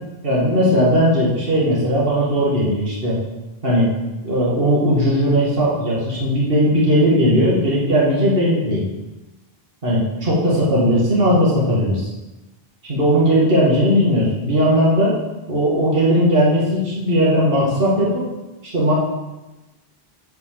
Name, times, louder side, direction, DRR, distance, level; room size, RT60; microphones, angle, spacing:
voice 1, 0.2-3.2 3.6-3.9 4.2-8.9 9.8-12.1 12.8-15.1 15.5-18.2 18.7-18.9, equal, 65° right, -6 dB, 2.4 m, -17 dB
8.2 x 5.0 x 7.4 m, 1.1 s
omnidirectional pair, 1.0 m